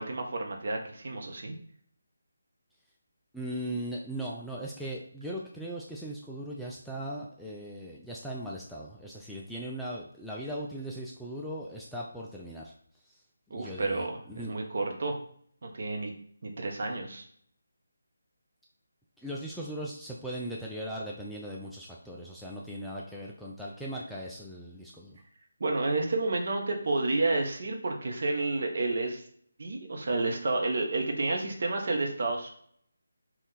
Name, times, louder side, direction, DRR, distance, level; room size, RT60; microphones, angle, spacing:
voice 1, 0.0-1.5 13.5-15.2 15.6-16.1 16.4-17.2 25.6-29.2 29.6-32.5, right 2 dB, 50° right, 2 dB, 0.8 m, -30 dB
voice 2, 3.3-12.7 13.0-13.2 13.5-14.5 19.2-25.2, right 1 dB, ahead, -5 dB, 0.3 m, -39 dB
3.5 x 2.4 x 4.1 m, 0.63 s
figure-of-eight pair, 155°, 0 cm